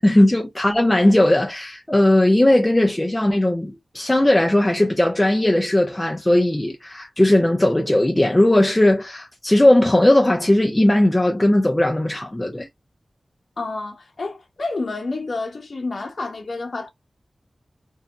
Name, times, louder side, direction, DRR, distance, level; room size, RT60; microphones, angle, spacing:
voice 1, 0.0-12.7, left 1 dB, 15° left, 0.5 m, -17 dB
voice 2, 13.6-16.9, left 3 dB, 65° left, 0.6 m, -29 dB
2.6 x 2.1 x 2.8 m
wide cardioid pair, 95°, 0 cm